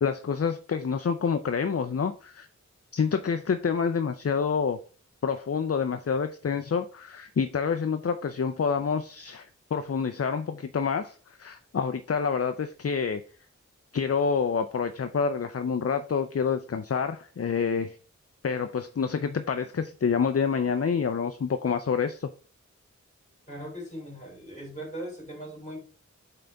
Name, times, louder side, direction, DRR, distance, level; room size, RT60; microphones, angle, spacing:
voice 1, 0.0-2.5 2.9-4.8 5.2-13.2 13.9-18.0 18.4-22.3, left 6 dB, 50° left, 0.5 m, -27 dB
voice 2, 23.5-25.8, equal, 25° left, 3.5 m, -39 dB
7.6 x 3.9 x 3.4 m
wide cardioid pair, 55°, 31 cm